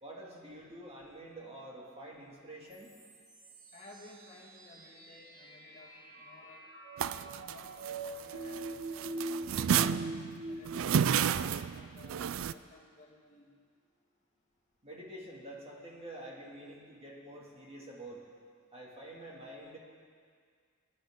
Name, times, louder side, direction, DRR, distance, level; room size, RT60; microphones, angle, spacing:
voice 1, 0.0-3.0 14.8-18.2 18.7-19.8, right 1 dB, 30° right, -3 dB, 2.3 m, -47 dB
sound 1, 2.7-10.8, right 2 dB, 90° right, 4.7 m, -43 dB
voice 2, 3.7-6.7 7.2-10.1 10.5-13.5, left 2 dB, 35° left, -3 dB, 1.8 m, -57 dB
sound 2, 7.0-8.7 9.0-12.5, right 8 dB, 70° right, 0.4 m, -31 dB
21.5 x 11.5 x 3.7 m, 2.1 s
head